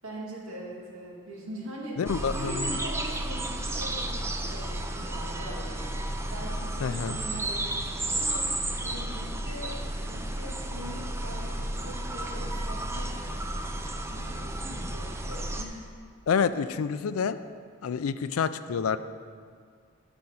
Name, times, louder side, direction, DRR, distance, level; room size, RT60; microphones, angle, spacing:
voice 1, 0.0-2.0 2.3-5.9 6.3-8.5 8.8-9.8 10.0-13.1 14.1-15.8, equal, 75° right, -2 dB, 1.9 m, -41 dB
voice 2, 2.0-2.8 6.8-7.2 16.3-17.4 17.8-19.0, left 6 dB, 75° left, 13 dB, 0.4 m, -28 dB
sound 1, 2.1-15.6, right 1 dB, 10° right, 0.4 m, -32 dB
12.0 x 5.2 x 5.6 m, 2.1 s
head